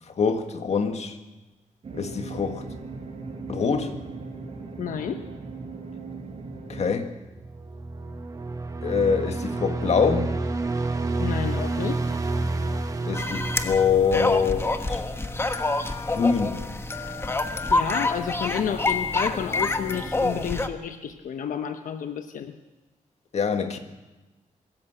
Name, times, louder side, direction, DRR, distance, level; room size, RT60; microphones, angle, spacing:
voice 1, 0.2-1.2 1.9-2.6 3.5-4.0 6.7-7.1 8.8-10.3 13.0-15.0 16.1-16.6 23.3-23.8, left 6 dB, 55° left, 1.8 m, -24 dB
sound 1, 1.8-7.0, right 4 dB, 50° right, 4.8 m, -38 dB
voice 2, 4.8-5.2 11.2-12.2 17.7-22.5, left 8 dB, 85° left, 1.0 m, -30 dB
sound 2, 7.3-14.6, right 2 dB, 25° right, 1.4 m, -29 dB
sound 3, 13.1-20.7, left 2 dB, 20° left, 1.1 m, -27 dB
24.0 x 14.0 x 7.8 m
wide cardioid pair, 140°, 13 cm